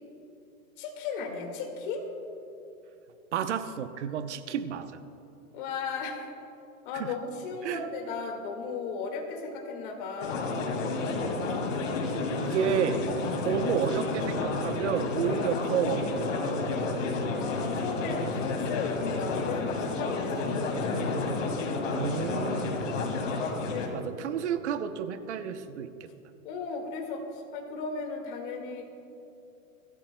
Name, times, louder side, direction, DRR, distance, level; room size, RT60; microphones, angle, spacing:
voice 1, 0.8-2.1 5.5-6.2 6.8-10.8 17.4-21.6 23.7-24.0 26.4-28.9, left 4 dB, 35° left, 2 dB, 2.0 m, -36 dB
voice 2, 3.3-4.9 6.9-7.1 7.6-7.8 12.1-13.0 13.4-16.8 17.1-17.3 21.9-22.8 23.9-26.1, right 8 dB, 50° right, 10 dB, 0.8 m, -31 dB
sound 1, 10.2-23.9, left 3 dB, 60° left, 2.3 m, -30 dB
24.5 x 13.5 x 2.2 m, 2.8 s
hypercardioid pair, 160°, 43 cm